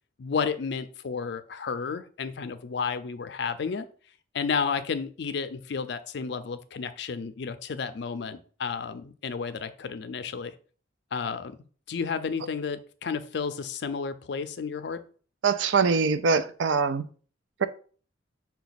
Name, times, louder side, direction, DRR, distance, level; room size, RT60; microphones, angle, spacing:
voice 1, 0.2-3.9 4.3-10.5 11.1-11.6 11.9-15.0, left 5 dB, 60° left, 0.4 m, -32 dB
voice 2, 15.4-17.0, right 5 dB, 80° right, 0.4 m, -23 dB
5.8 x 2.3 x 4.0 m
head